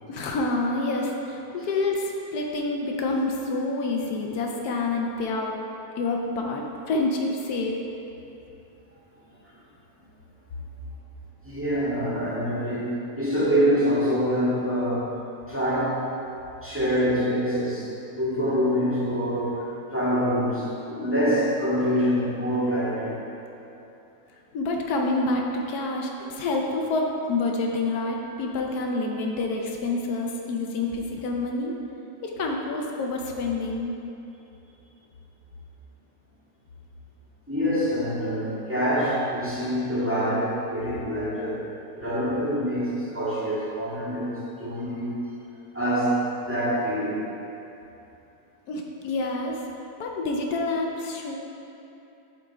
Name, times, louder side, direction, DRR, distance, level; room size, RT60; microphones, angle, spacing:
voice 1, 0.1-5.5 6.0-7.8 24.5-31.7 32.2-33.9 48.7-49.6 50.0-51.4, left 2 dB, 85° left, 1 dB, 1.3 m, -27 dB
voice 2, 11.4-15.2 15.5-16.0 16.6-23.2 37.5-41.7 41.9-45.3 45.7-47.3, equal, 10° right, -10 dB, 1.8 m, -25 dB
11.5 x 3.9 x 4.7 m, 2.9 s
omnidirectional pair, 1.6 m